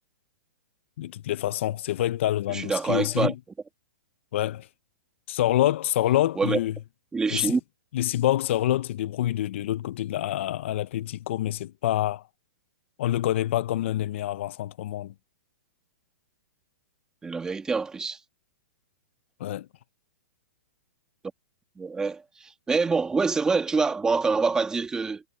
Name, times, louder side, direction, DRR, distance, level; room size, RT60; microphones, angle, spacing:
voice 1, 1.0-3.3 4.3-4.7 5.3-6.7 7.3-7.6 7.9-12.2 13.0-15.1 19.4-19.7, left 13 dB, 55° left, 0.5 m, -26 dB
voice 2, 2.5-3.3 6.4-6.6 7.1-7.6 17.2-18.2 21.8-25.2, right 4 dB, 10° right, 1.9 m, -26 dB
hypercardioid pair, 155°, 8 cm